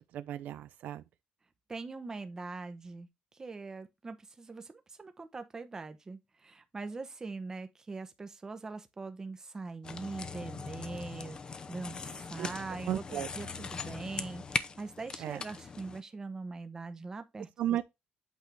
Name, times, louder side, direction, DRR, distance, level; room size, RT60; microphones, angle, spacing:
voice 1, 0.1-1.0 12.4-12.5 12.9-13.3 15.2-15.4 17.6-17.8, right 12 dB, 75° right, 0.5 m, -34 dB
voice 2, 1.7-3.1 3.3-11.9 12.2-17.8, right 3 dB, 20° right, 0.9 m, -42 dB
sound 1, 9.8-16.0, left 5 dB, 30° left, 0.6 m, -40 dB
8.3 x 4.4 x 3.3 m
cardioid pair, 140°, 3 cm